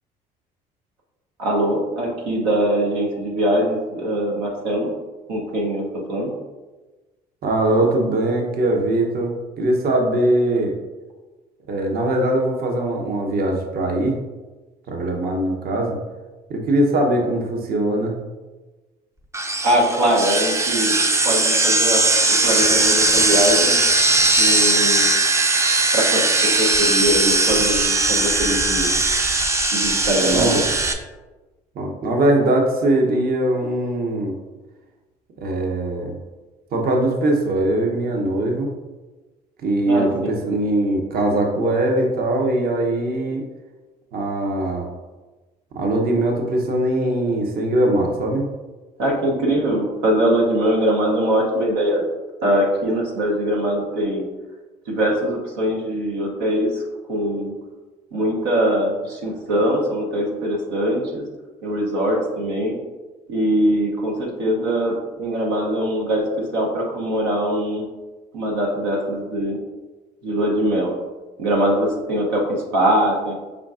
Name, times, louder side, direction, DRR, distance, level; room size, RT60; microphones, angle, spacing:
voice 1, 1.4-4.9 5.3-5.8 6.1-6.3 19.6-20.9 21.2-22.0 22.3-23.8 24.4-25.1 25.9-28.9 29.7-30.6 39.9-40.3 49.0-52.0 52.4-54.3 54.9-56.8 57.1-57.5 58.1-61.2 61.6-62.8 63.3-67.9 68.3-69.6 70.2-70.9 71.4-73.3, right 1 dB, 85° right, -1 dB, 0.8 m, -22 dB
voice 2, 7.4-10.7 11.7-14.2 14.9-16.0 16.5-18.2 30.3-30.6 31.8-34.4 35.4-36.2 36.7-38.7 39.6-43.4 44.1-44.9 45.7-48.5, right 1 dB, 50° right, 1 dB, 0.8 m, -21 dB
sound 1, 19.3-30.9, right 2 dB, 15° right, 0.4 m, -19 dB
4.6 x 3.7 x 2.4 m, 1.2 s
supercardioid pair, 75°, 19 cm